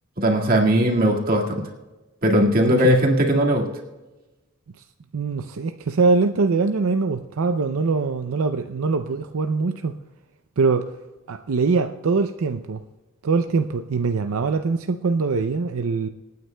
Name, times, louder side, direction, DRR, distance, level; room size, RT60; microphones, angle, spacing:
voice 1, 0.2-1.6 2.2-3.7, equal, 40° right, 1.9 m, -19 dB
voice 2, 2.6-2.9 5.1-9.9 10.6-10.9 11.3-12.8 13.2-16.1, right 4 dB, 80° right, 0.5 m, -23 dB
27.5 x 9.4 x 2.2 m
head